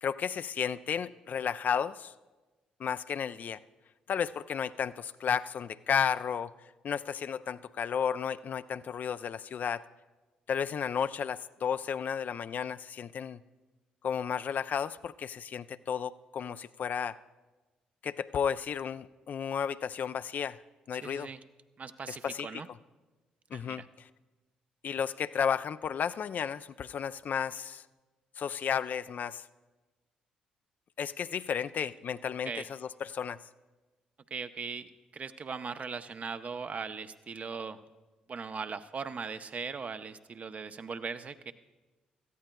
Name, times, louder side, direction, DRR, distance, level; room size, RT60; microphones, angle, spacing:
voice 1, 0.0-2.1 2.8-3.6 4.1-6.5 6.8-9.9 10.5-13.4 14.0-17.2 18.0-20.6 20.9-21.3 22.1-22.6 23.5-23.8 24.8-27.8 28.4-29.5 31.0-33.4, left 7 dB, 50° left, 13 dB, 0.3 m, -33 dB
voice 2, 21.0-21.4 21.8-22.7 23.5-23.9 32.4-32.7 34.3-37.8 38.3-41.5, right 5 dB, 40° right, 11 dB, 0.6 m, -39 dB
17.5 x 14.0 x 2.3 m, 1.2 s
hypercardioid pair, 45°, 4 cm